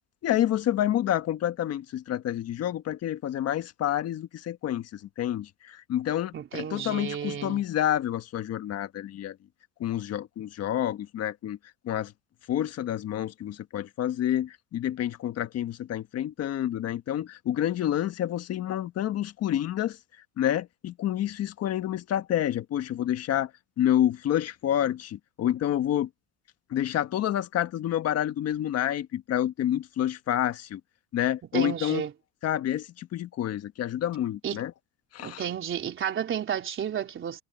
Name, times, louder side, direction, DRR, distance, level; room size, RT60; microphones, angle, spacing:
voice 1, 0.2-9.4 9.8-11.6 11.8-12.1 12.5-20.0 20.4-23.5 23.8-26.1 26.7-30.8 31.1-32.0 32.4-34.7 35.1-35.5, left 11 dB, 45° left, 1.5 m, -28 dB
voice 2, 6.3-7.6 31.5-32.1 34.4-34.6 35.2-37.4, right 9 dB, 35° right, 3.4 m, -32 dB
cardioid pair, 140°, 34 cm